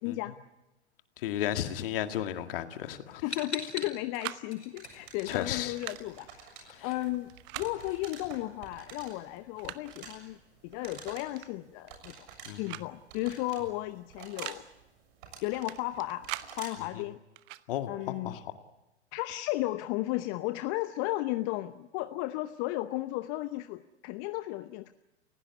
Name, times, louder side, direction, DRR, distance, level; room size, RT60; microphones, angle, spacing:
voice 1, 0.0-0.3 3.2-6.5 6.8-10.4 10.6-12.1 12.6-14.6 15.4-16.2 16.6-17.2 17.9-18.4 19.1-24.9, left 17 dB, 35° left, 0.9 m, -34 dB
voice 2, 1.2-3.2 5.3-5.8 6.7-6.9 12.5-12.8 16.9-17.0 17.7-18.5, left 11 dB, 55° left, 2.0 m, -34 dB
sound 1, 3.3-6.0 6.3-8.7, left 2 dB, 85° left, 5.3 m, -43 dB
sound 2, 3.3-3.9 4.2-4.5 5.6-6.0 7.3-7.7 8.8-8.9 9.3-10.0 11.4-11.5 11.8-12.4 12.7-12.9 13.1-13.2 14.2-14.6 15.7-16.5 17.4-17.6, right 18 dB, 35° right, 0.9 m, -41 dB
sound 3, 4.8-16.9, right 5 dB, 50° right, 7.0 m, -50 dB
30.0 x 16.5 x 8.5 m
figure-of-eight pair, 100°, 33 cm